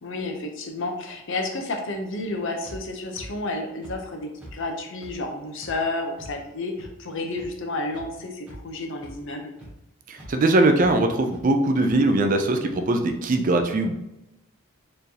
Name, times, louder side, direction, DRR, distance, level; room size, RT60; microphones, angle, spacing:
voice 1, 0.0-9.5, left 2 dB, 60° left, 3 dB, 0.7 m, -31 dB
sound 1, 2.6-2.8 3.1-3.3 3.8-3.9 4.4-4.5 5.0-5.1 5.6-5.7 6.2-6.3 6.8-6.9 7.4-7.5 7.9-8.0 8.4-8.7 9.0-9.1 9.6-9.7 10.2-10.3 10.8-10.9 11.3-11.4 11.8-11.9, equal, 5° right, 1.2 m, -42 dB
voice 2, 10.1-14.0, right 2 dB, 35° right, 6 dB, 0.4 m, -21 dB
4.4 x 3.2 x 2.8 m, 0.89 s
head